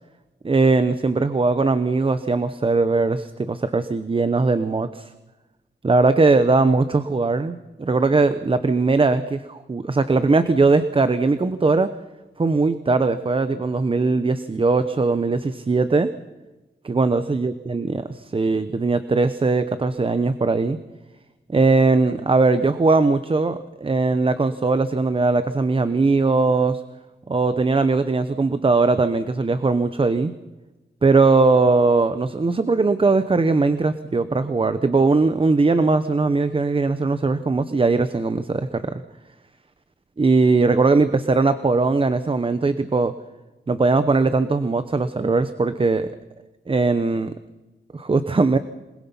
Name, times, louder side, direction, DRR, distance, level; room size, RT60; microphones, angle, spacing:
voice 1, 0.4-5.1 5.8-11.9 12.4-16.1 16.9-20.8 21.5-26.8 27.3-30.3 31.0-39.0 40.2-43.1 43.7-46.1 46.7-47.3 47.9-48.6, right 3 dB, 30° right, 11 dB, 0.9 m, -20 dB
27.0 x 21.0 x 5.5 m, 1.1 s
wide cardioid pair, 150°, 19 cm